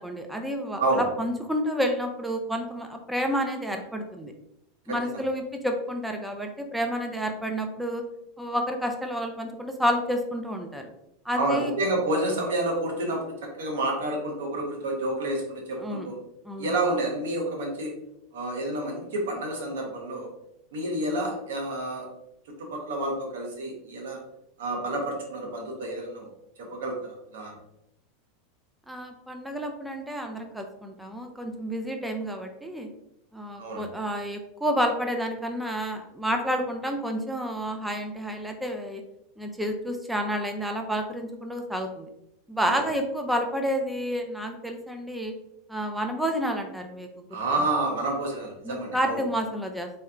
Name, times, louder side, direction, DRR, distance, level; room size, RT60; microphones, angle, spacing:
voice 1, 0.0-0.8 1.2-4.3 4.9-8.0 8.4-10.9 11.2-11.7 15.8-16.1 16.4-16.7 28.9-32.9 33.3-39.0 39.4-42.1 42.5-45.3 45.7-47.1 48.6-49.9, equal, 5° right, 4 dB, 0.6 m, -30 dB
voice 2, 11.3-16.2 16.6-17.9 18.3-20.3 20.7-22.1 22.6-24.2 24.6-26.3 26.6-27.5 33.6-33.9 47.3-49.2, right 2 dB, 80° right, 1 dB, 1.4 m, -29 dB
4.0 x 3.4 x 3.7 m, 0.83 s
hypercardioid pair, 115°, 0 cm